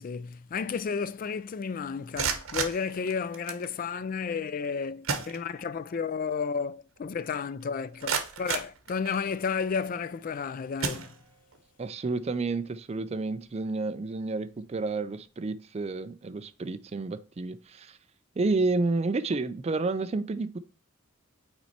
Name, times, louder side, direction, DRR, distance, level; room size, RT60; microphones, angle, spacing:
voice 1, 0.0-11.1, left 5 dB, 40° left, 0.3 m, -32 dB
sound 1, 2.0-3.7 4.6-4.7 5.0-5.9 6.3-6.4 7.0-7.1 7.6-9.5 10.1-10.3 10.8-11.6, right 5 dB, 75° right, 1.1 m, -34 dB
voice 2, 11.8-18.0 18.4-20.6, right 3 dB, 30° right, 0.4 m, -30 dB
5.9 x 4.2 x 4.2 m
head